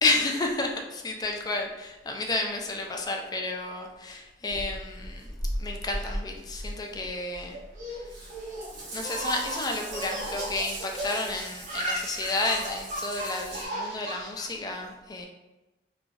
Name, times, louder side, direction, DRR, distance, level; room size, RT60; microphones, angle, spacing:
voice 1, 0.0-5.3 5.6-7.6 7.9-8.1 8.9-15.3, left 2 dB, 20° left, 2 dB, 0.3 m, -31 dB
Water tap faucet / Bathtub (filling or washing) / Drip, 4.5-13.7, right 1 dB, 65° right, 1.1 m, -38 dB
Laughter, 7.5-11.3 11.6-14.4, right 1 dB, 45° right, 0.6 m, -35 dB
Scratching (performance technique), 10.8-11.4 11.8-11.9 12.3-13.4 13.7-14.4, left 1 dB, 65° left, 0.6 m, -46 dB
3.2 x 2.3 x 2.5 m, 1.0 s
head